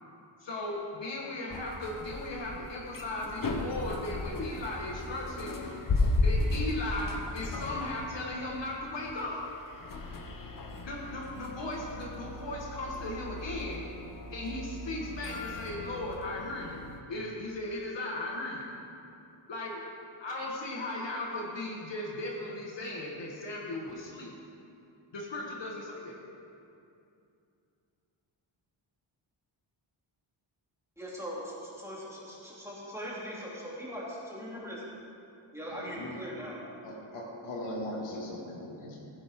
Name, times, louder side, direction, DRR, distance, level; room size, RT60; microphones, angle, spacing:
voice 1, 0.4-5.7 6.2-9.4 10.8-13.9 14.3-16.8 17.1-18.7 19.5-19.8 20.2-24.3 25.1-26.2, left 2 dB, 60° left, -2 dB, 1.6 m, -37 dB
sound 1, 1.5-17.0, left 2 dB, 40° left, 1.0 m, -35 dB
voice 2, 31.0-34.8 35.5-36.6, equal, 5° right, -7 dB, 3.1 m, -40 dB
voice 3, 35.7-36.2 36.8-39.0, left 1 dB, 90° left, -3 dB, 2.4 m, -39 dB
15.0 x 10.5 x 3.7 m, 2.6 s
wide cardioid pair, 130°, 49 cm